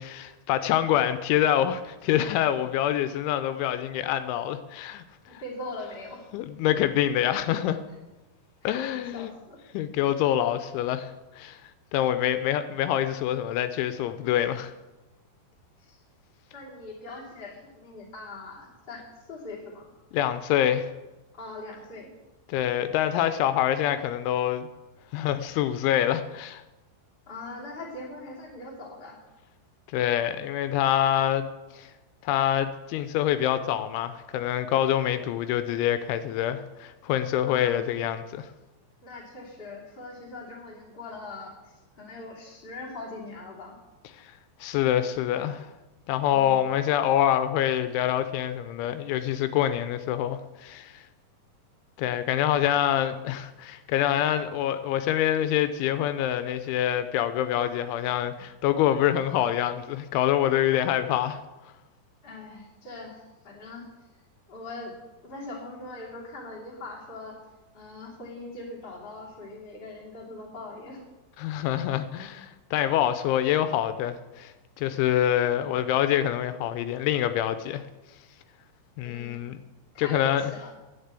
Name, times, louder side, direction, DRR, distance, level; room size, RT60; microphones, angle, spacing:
voice 1, 0.0-5.0 5.3-5.4 6.3-7.8 8.6-9.3 9.7-11.1 11.4-11.6 11.9-14.7 20.1-20.9 22.5-24.7 25.1-26.6 29.9-31.5 31.7-31.9 32.2-38.5 44.6-45.7 46.1-51.0 52.0-61.4 71.4-77.8 79.0-79.6 80.0-80.4, left 11 dB, 85° left, 10 dB, 3.0 m, -26 dB
voice 2, 5.2-6.2 8.6-8.8 9.1-9.6 15.8-16.0 16.5-19.9 21.3-22.1 27.3-29.2 37.4-37.8 39.0-43.7 62.2-63.9 64.5-64.9 65.2-67.4 67.7-71.1 79.0-79.4 79.9-80.7, left 2 dB, 20° left, -4 dB, 1.7 m, -41 dB
10.0 x 7.5 x 8.1 m, 1.1 s
omnidirectional pair, 5.4 m